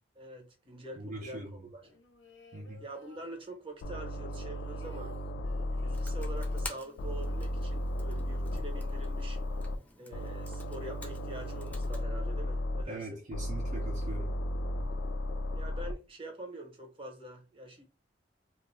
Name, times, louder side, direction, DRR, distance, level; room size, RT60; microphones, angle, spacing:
voice 1, 0.1-2.0 2.8-5.1 5.8-9.4 10.0-13.2 15.5-17.8, right 1 dB, 30° right, 0.8 m, -45 dB
voice 2, 1.0-1.5 2.5-2.8 12.9-14.3, right 2 dB, 45° right, 0.5 m, -41 dB
sound 1, 1.7-3.9 4.2-8.2 8.5-8.6 8.8-9.3, left 1 dB, 85° left, 0.8 m, -58 dB
sound 2, 3.8-6.7 7.0-9.8 10.1-12.8 13.3-15.9, left 1 dB, 70° left, 0.3 m, -34 dB
Computer keyboard, 5.9-12.0, left 2 dB, 10° left, 0.5 m, -50 dB
2.4 x 2.0 x 3.1 m
head